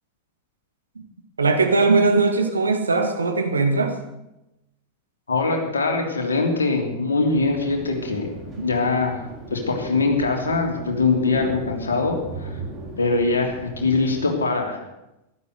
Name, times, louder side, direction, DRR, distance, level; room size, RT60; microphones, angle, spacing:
voice 1, 1.4-4.0 8.6-8.7, right 3 dB, 75° right, 5 dB, 2.0 m, -20 dB
voice 2, 5.3-8.3 8.6-9.2 9.5-12.5 13.0-14.8, left 3 dB, 75° left, 2 dB, 3.0 m, -22 dB
sound 1, 7.3-14.3, right 3 dB, 25° right, 3.9 m, -37 dB
15.0 x 12.0 x 6.5 m, 0.92 s
figure-of-eight pair, 90°, 0 cm